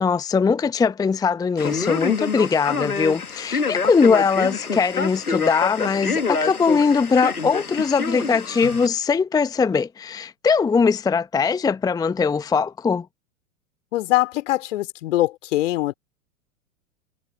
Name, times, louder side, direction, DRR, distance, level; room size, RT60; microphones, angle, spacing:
voice 1, 0.0-13.1, left 5 dB, 10° left, 0.8 m, -21 dB
Male speech man speaking, 1.6-8.9, left 4 dB, 85° left, 1.9 m, -27 dB
voice 2, 13.9-15.9, left 16 dB, 55° left, 2.9 m, -22 dB
figure-of-eight pair, 95°, 43 cm